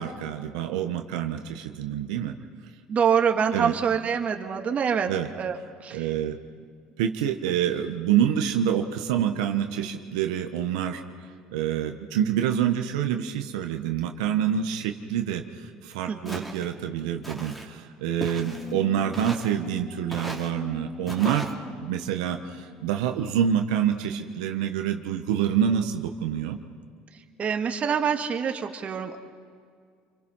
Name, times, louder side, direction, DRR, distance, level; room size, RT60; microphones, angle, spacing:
voice 1, 0.0-2.3 3.5-3.7 5.1-5.3 5.9-6.4 7.0-11.0 11.5-21.5 21.8-26.6, right 9 dB, 90° right, 5 dB, 1.3 m, -27 dB
voice 2, 2.9-5.1 5.4-5.6 5.8-6.1 16.1-16.5 27.4-29.2, right 7 dB, 40° right, 5 dB, 2.0 m, -25 dB
Walk footsteps, 16.3-16.7 17.2-17.7 18.2-18.7 19.1-19.6 20.1-20.5 21.1-21.5, right 1 dB, ahead, 3.1 m, -37 dB
sound 1, 18.4-23.6, left 5 dB, 35° left, 2.8 m, -42 dB
28.5 x 24.0 x 5.7 m, 2.1 s
supercardioid pair, 90°, 4 cm